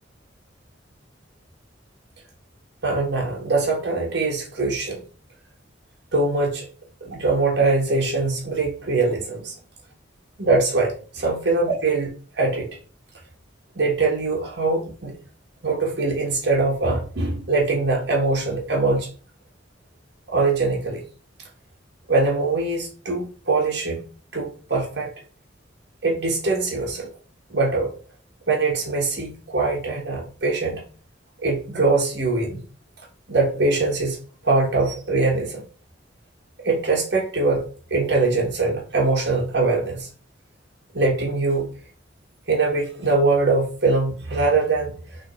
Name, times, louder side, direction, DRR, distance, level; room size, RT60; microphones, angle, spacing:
voice 1, 2.8-5.0 6.1-6.7 7.0-9.5 10.4-12.7 13.7-15.2 15.6-19.1 20.3-21.0 22.1-24.0 24.3-25.1 26.0-27.1 27.5-27.9 28.5-30.8 31.4-32.6 33.3-34.2 34.4-35.7 36.6-40.1 40.9-41.7 42.5-44.9, right 3 dB, 65° right, 1.5 m, -22 dB
4.0 x 2.9 x 4.1 m
head